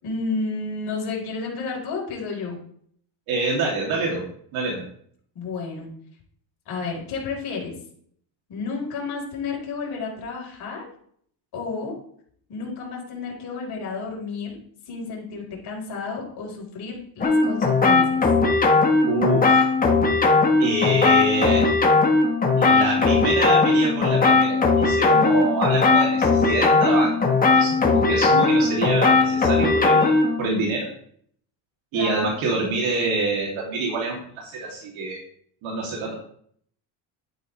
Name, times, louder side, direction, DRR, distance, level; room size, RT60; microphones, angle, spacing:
voice 1, 0.0-2.6 5.3-5.9 6.7-7.7 8.5-10.9 11.5-12.0 12.5-14.5 14.9-18.2 31.9-32.3, left 4 dB, 50° left, -2 dB, 4.4 m, -31 dB
voice 2, 3.3-4.2 4.5-4.8 19.0-19.7 20.6-21.7 22.5-30.9 31.9-35.2 35.6-36.1, right 2 dB, 70° right, -2 dB, 3.0 m, -26 dB
sound 1, 17.2-30.4, left 3 dB, 15° left, 1.4 m, -18 dB
11.5 x 9.0 x 3.3 m, 0.63 s
cardioid pair, 155°, 50 cm